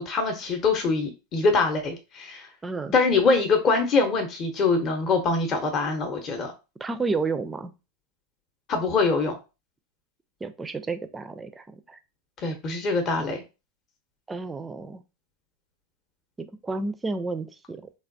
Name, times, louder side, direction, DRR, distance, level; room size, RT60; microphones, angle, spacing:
voice 1, 0.0-2.5 2.9-6.5 8.7-9.4 12.4-13.4, left 4 dB, 35° left, 4 dB, 0.7 m, -24 dB
voice 2, 2.6-3.0 6.8-7.7 10.4-12.0 14.3-15.0 16.4-17.8, right 3 dB, 15° right, 10 dB, 0.4 m, -31 dB
3.3 x 2.3 x 2.5 m, 0.28 s
supercardioid pair, 120°, 0 cm